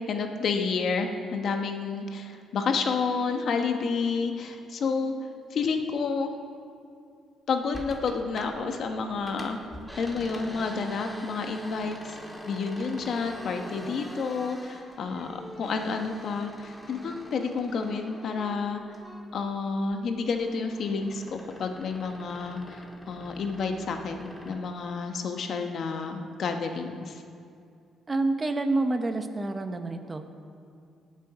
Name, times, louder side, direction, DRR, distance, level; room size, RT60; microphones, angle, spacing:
voice 1, 0.1-5.1 5.5-6.3 7.5-9.6 10.0-12.2 12.4-18.8 19.3-27.2, left 4 dB, 60° left, 5 dB, 1.3 m, -30 dB
sound 1, 7.7-8.8 9.1-19.5 19.8-24.6, equal, 5° left, 1.9 m, -44 dB
voice 2, 28.1-30.3, right 2 dB, 25° right, 7 dB, 1.1 m, -28 dB
18.0 x 7.5 x 5.0 m, 2.4 s
cardioid pair, 90°, 0 cm